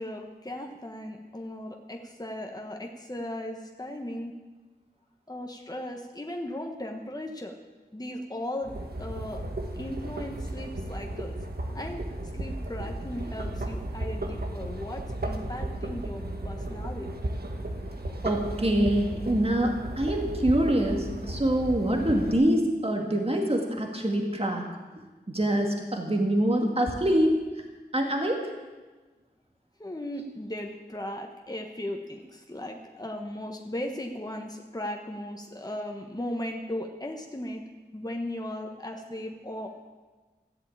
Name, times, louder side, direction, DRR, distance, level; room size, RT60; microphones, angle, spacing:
voice 1, 0.0-4.4 5.3-7.5 7.9-8.7 9.0-9.4 9.8-11.4 11.7-12.1 12.3-17.1 29.8-37.6 37.9-39.8, left 1 dB, 20° left, 2 dB, 1.3 m, -37 dB
sound 1, 8.6-22.3, right 1 dB, 70° right, 1.6 m, -35 dB
voice 2, 18.2-24.7 25.3-27.3 27.9-28.5, right 1 dB, 35° right, 1 dB, 2.1 m, -25 dB
14.0 x 7.6 x 8.7 m, 1.3 s
wide cardioid pair, 40°, 17 cm